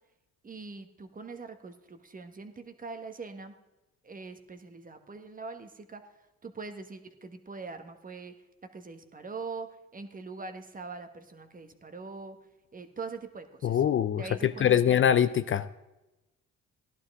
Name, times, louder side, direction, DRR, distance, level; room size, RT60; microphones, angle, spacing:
voice 1, 0.4-3.5 4.0-6.1 6.4-8.3 8.7-9.7 9.9-12.4 12.7-13.8 14.1-15.0, right 4 dB, 30° right, 7 dB, 1.2 m, -42 dB
voice 2, 13.6-15.7, left 9 dB, 45° left, 13 dB, 0.4 m, -24 dB
14.5 x 11.0 x 3.6 m, 1.0 s
cardioid pair, 90°, 30 cm